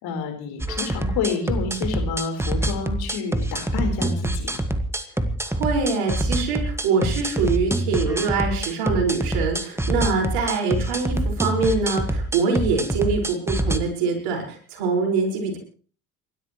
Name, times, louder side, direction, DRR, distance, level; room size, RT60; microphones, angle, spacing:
voice 1, 0.0-4.6, left 5 dB, 60° left, 4 dB, 4.6 m, -29 dB
sound 1, 0.6-13.8, right 1 dB, 5° right, 1.6 m, -25 dB
voice 2, 5.4-15.6, right 4 dB, 65° right, 2 dB, 5.7 m, -24 dB
29.0 x 13.0 x 3.2 m, 0.42 s
hypercardioid pair, 60°, 43 cm